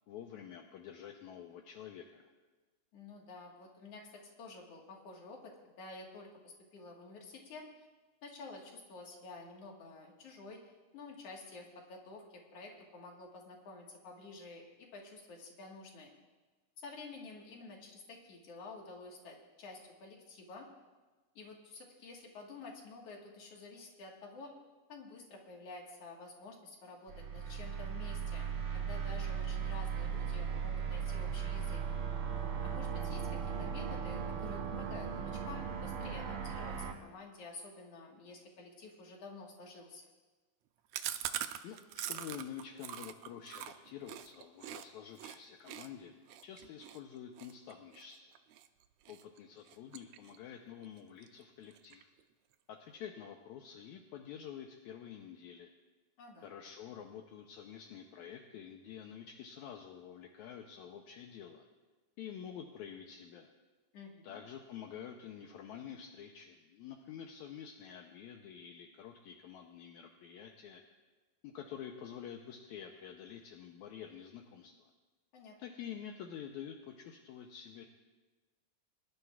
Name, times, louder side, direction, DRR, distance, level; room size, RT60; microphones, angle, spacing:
voice 1, 0.1-2.3 41.6-48.2 49.1-52.1 52.7-55.7 56.4-61.6 62.2-63.5 64.2-70.8 71.4-74.9 75.6-77.9, left 8 dB, 75° left, 3 dB, 1.9 m, -48 dB
voice 2, 2.9-7.7 8.2-10.6 10.9-16.1 16.8-20.7 21.4-24.5 24.9-31.8 32.6-40.1 56.2-56.5 63.9-64.4 75.3-75.6, left 3 dB, 55° left, 0 dB, 2.4 m, -50 dB
sound 1, 27.1-36.9, right 7 dB, 55° right, 1.7 m, -37 dB
Chewing mastication, 40.9-44.8 45.2-45.4 45.7-48.7 49.1-49.4 49.7-50.5 50.8-50.9 51.2-51.3 51.6-52.2, right 11 dB, 90° right, 1.5 m, -43 dB
24.5 x 11.5 x 2.4 m, 1.3 s
omnidirectional pair, 3.8 m